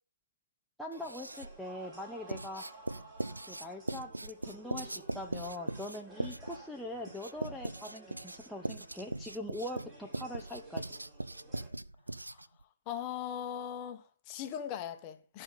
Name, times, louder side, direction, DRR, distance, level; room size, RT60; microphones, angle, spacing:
voice 1, 0.8-2.7 3.5-10.8, left 1 dB, ahead, 0.6 m, -42 dB
sound 1, 0.9-11.7, right 3 dB, 20° right, 3.7 m, -55 dB
Writing, 0.9-1.6 2.3-12.6, right 2 dB, 90° right, 0.6 m, -40 dB
voice 2, 12.9-15.4, left 9 dB, 25° left, 1.1 m, -39 dB
12.5 x 5.5 x 5.4 m
figure-of-eight pair, 135°, 0 cm